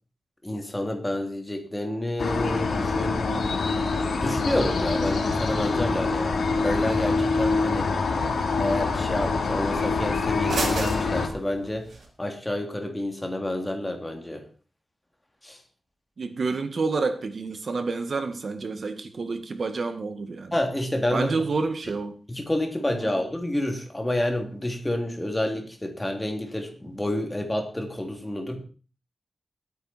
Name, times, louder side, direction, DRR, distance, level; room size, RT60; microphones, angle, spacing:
voice 1, 0.4-3.6 4.2-7.9 8.6-11.9 12.2-14.4 15.4-15.6 20.5-21.4 22.3-28.6, left 1 dB, 15° left, 4 dB, 3.1 m, -29 dB
sound 1, 2.2-11.3, left 4 dB, 90° left, 2.7 m, -25 dB
sound 2, 4.1-12.1, right 3 dB, 80° right, 4.5 m, -39 dB
voice 2, 8.1-8.4 16.2-20.5 21.1-22.2 23.0-23.1, right 4 dB, 60° right, 9 dB, 2.0 m, -29 dB
21.0 x 9.6 x 4.5 m, 0.37 s
wide cardioid pair, 125°, 0 cm